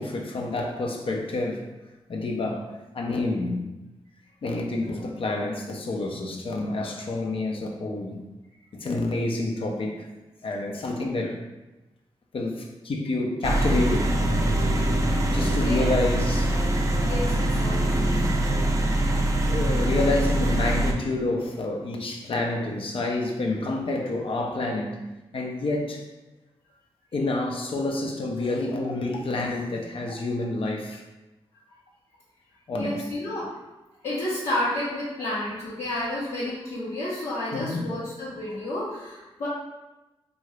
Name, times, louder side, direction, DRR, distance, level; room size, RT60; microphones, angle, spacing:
voice 1, 0.0-1.7 2.1-3.7 4.4-8.2 8.7-10.1 10.4-11.4 12.3-14.2 15.3-16.5 18.0-18.2 18.9-19.0 19.5-25.0 25.3-26.0 27.1-31.0 32.7-33.0 37.5-37.8, left 2 dB, 60° left, 1 dB, 0.5 m, -28 dB
sound 1, 13.4-20.9, right 1 dB, 30° right, 0.5 m, -24 dB
sound 2, 13.7-18.9, equal, 35° left, 0.9 m, -32 dB
voice 2, 15.4-16.0 17.0-18.2 32.7-33.5 34.0-39.5, left 1 dB, 80° left, -12 dB, 0.9 m, -31 dB
2.8 x 2.5 x 3.1 m, 1.0 s
cardioid pair, 50°, 11 cm